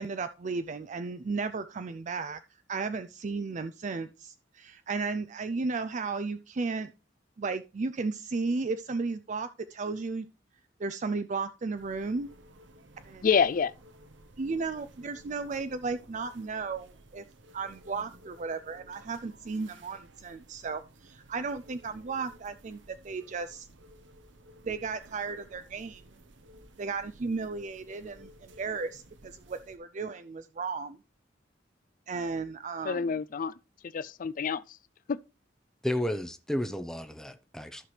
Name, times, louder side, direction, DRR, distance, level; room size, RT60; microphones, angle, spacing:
voice 1, 0.0-2.4 2.7-6.9 7.4-10.3 10.8-12.3 13.1-13.3 14.4-17.2 17.5-23.7 24.7-26.0 26.8-31.0 32.1-33.1, right 4 dB, 40° right, 0.4 m, -34 dB
sound 1, 11.8-29.8, right 1 dB, 85° right, 1.1 m, -55 dB
voice 2, 13.2-13.7 32.8-33.5 33.8-34.6 35.1-35.2, left 6 dB, 45° left, 0.4 m, -27 dB
voice 3, 35.8-37.9, left 1 dB, 5° left, 0.7 m, -32 dB
14.0 x 5.8 x 3.2 m
head